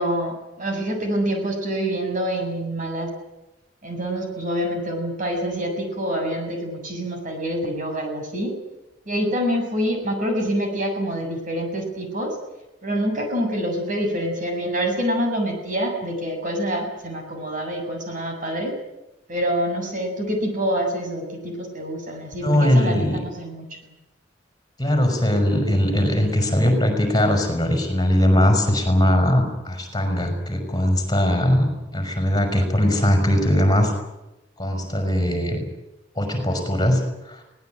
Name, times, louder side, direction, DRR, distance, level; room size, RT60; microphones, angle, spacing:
voice 1, 0.0-3.1 3.8-8.6 9.1-12.4 12.8-18.7 19.3-23.7, equal, 45° right, 3 dB, 7.3 m, -26 dB
voice 2, 22.4-23.2 24.8-33.9 34.6-35.6 36.2-37.4, left 1 dB, 20° left, 5 dB, 5.6 m, -20 dB
24.0 x 18.5 x 9.3 m, 0.95 s
head